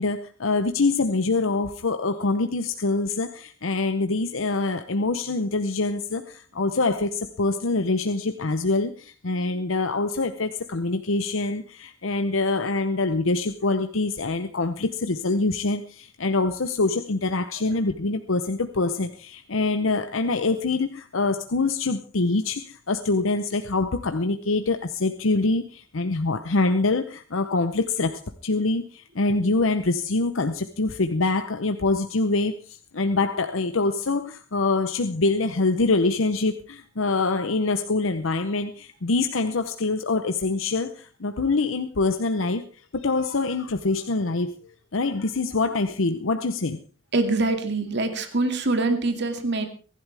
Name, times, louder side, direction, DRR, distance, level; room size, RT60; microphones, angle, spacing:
voice 1, 0.0-42.6 42.9-44.5 44.9-46.8, left 3 dB, 85° left, 0.9 m, -25 dB
voice 2, 47.1-49.6, right 2 dB, 60° right, 2.3 m, -24 dB
24.0 x 11.5 x 3.5 m
head